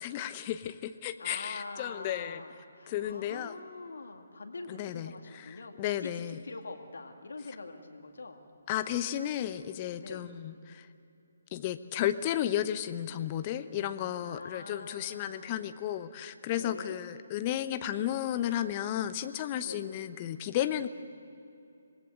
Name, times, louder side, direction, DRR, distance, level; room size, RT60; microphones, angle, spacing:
voice 1, 0.0-2.4 2.9-3.6 4.7-6.4 8.7-10.9 11.5-20.9, left 11 dB, 30° left, 11 dB, 0.8 m, -33 dB
voice 2, 1.2-8.4 10.0-10.2 14.2-15.8 16.5-17.0 19.6-19.8, left 3 dB, 65° left, 4 dB, 2.2 m, -44 dB
26.5 x 19.5 x 8.0 m, 2.7 s
figure-of-eight pair, 140°, 0 cm